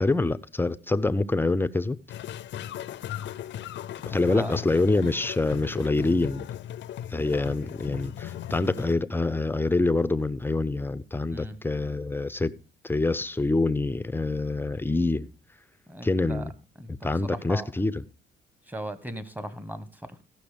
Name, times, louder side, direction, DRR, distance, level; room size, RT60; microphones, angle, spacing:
voice 1, 0.0-2.0 4.1-6.5 7.1-12.5 12.8-15.3 16.0-16.5 16.9-18.0, left 2 dB, 10° left, 0.6 m, -26 dB
sound 1, 2.1-8.9, left 11 dB, 70° left, 0.6 m, -37 dB
voice 2, 4.1-4.6 8.8-8.9 11.3-11.6 15.9-16.5 16.8-17.7 18.7-20.2, right 1 dB, 10° right, 1.3 m, -38 dB
15.5 x 6.1 x 5.1 m
cardioid pair, 90°, 20 cm